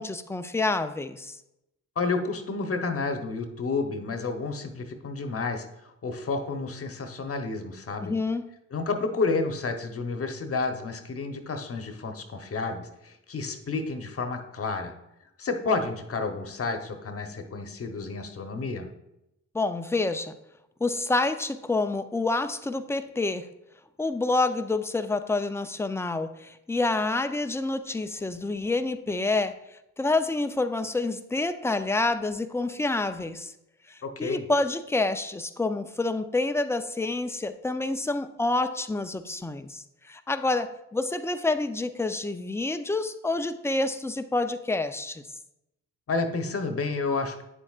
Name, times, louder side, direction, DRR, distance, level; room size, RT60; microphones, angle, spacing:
voice 1, 0.0-1.4 8.0-8.5 19.5-20.4 20.8-23.5 24.0-29.6 30.0-33.5 33.9-45.2, left 2 dB, 10° left, 9 dB, 0.5 m, -28 dB
voice 2, 2.0-8.1 8.7-14.9 15.4-18.9 34.0-34.4 46.1-47.4, left 3 dB, 45° left, 5 dB, 1.0 m, -30 dB
8.8 x 7.3 x 2.4 m, 0.87 s
supercardioid pair, 70°, 33 cm